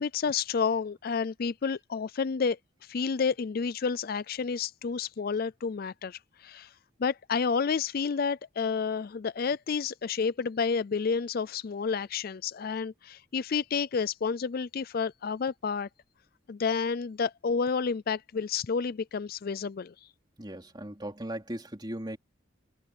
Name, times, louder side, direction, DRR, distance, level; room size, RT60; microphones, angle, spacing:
voice 1, 0.0-6.7 7.0-15.9 16.5-20.1, left 5 dB, 45° left, 0.4 m, -30 dB
voice 2, 20.4-22.2, right 1 dB, 20° right, 3.4 m, -38 dB
head